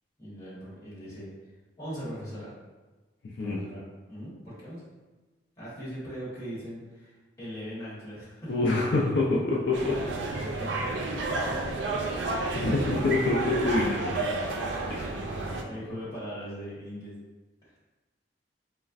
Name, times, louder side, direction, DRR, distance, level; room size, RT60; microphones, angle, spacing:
voice 1, 0.2-1.3 1.8-2.5 3.4-4.8 5.6-8.5 9.6-9.7 10.6-11.6 11.9-12.0 12.4-13.1 14.9-17.2 17.6-17.7, equal, 20° left, -10 dB, 1.3 m, -40 dB
voice 2, 8.5-9.9 12.5-14.1 14.9-15.0, left 2 dB, 70° left, -4 dB, 0.4 m, -26 dB
sound 1, 9.7-15.6, right 2 dB, 80° right, 0.4 m, -31 dB
4.0 x 2.1 x 2.4 m, 1.2 s
head